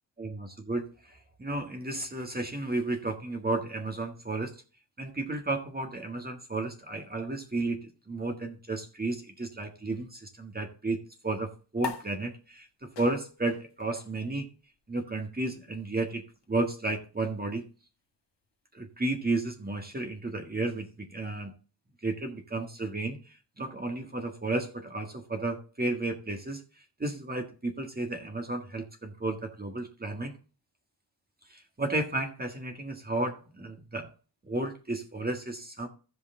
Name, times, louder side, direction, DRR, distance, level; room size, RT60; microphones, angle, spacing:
voice 1, 0.2-4.5 5.0-14.5 14.9-17.6 18.7-21.5 22.0-26.6 27.0-30.3 31.5-34.1 34.4-35.9, right 2 dB, 20° right, 3 dB, 1.7 m, -33 dB
sound 1, 11.8-18.6, left 5 dB, 70° left, 1.6 m, -45 dB
15.5 x 5.2 x 3.8 m, 0.35 s
wide cardioid pair, 155°, 44 cm